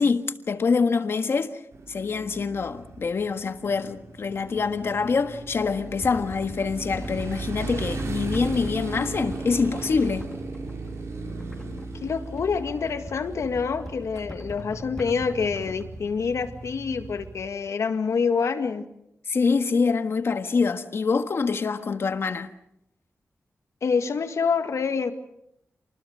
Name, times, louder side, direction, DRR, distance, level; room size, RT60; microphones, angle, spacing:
voice 1, 0.0-1.6 1.9-10.3 19.3-22.5, left 5 dB, 55° left, 1.5 m, -25 dB
Motorcycle, 1.7-17.5, right 3 dB, 70° right, 4.7 m, -36 dB
sound 1, 6.0-16.1, left 1 dB, 10° left, 2.5 m, -43 dB
voice 2, 12.0-18.8 23.8-25.1, left 5 dB, 80° left, 1.9 m, -26 dB
28.5 x 20.5 x 6.6 m
wide cardioid pair, 180°, 5 cm